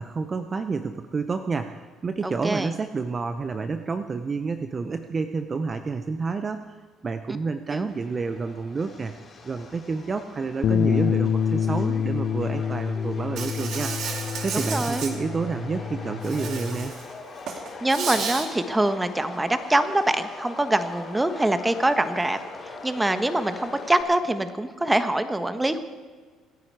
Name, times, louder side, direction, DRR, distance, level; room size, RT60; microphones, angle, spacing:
voice 1, 0.0-6.7 7.0-9.1 9.4-13.9 14.4-16.9, right 4 dB, 35° right, 9 dB, 0.8 m, -29 dB
voice 2, 2.2-2.7 7.7-7.9 14.5-15.0 17.5-25.8, right 1 dB, 10° right, 10 dB, 1.4 m, -24 dB
Subway metro underground, 7.9-24.0, left 3 dB, 40° left, 4.6 m, -42 dB
Bass guitar, 10.6-16.9, left 7 dB, 60° left, 0.6 m, -27 dB
Insect, 13.4-15.1 16.2-17.0 17.4-18.5, right 6 dB, 60° right, 2.3 m, -32 dB
26.5 x 9.9 x 4.8 m, 1.5 s
supercardioid pair, 80°, 0 cm